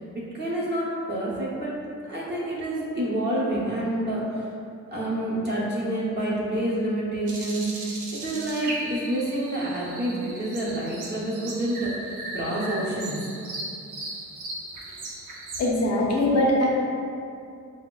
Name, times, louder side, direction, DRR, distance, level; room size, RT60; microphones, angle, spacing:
voice 1, 0.0-1.8 2.1-4.5 4.9-13.3, right 1 dB, 35° right, -7 dB, 0.7 m, -28 dB
sound 1, 7.3-15.7, right 2 dB, 85° right, 0.6 m, -37 dB
voice 2, 15.6-16.7, left 1 dB, 55° left, -3 dB, 0.6 m, -21 dB
5.1 x 2.0 x 2.2 m, 2.6 s
wide cardioid pair, 155°, 30 cm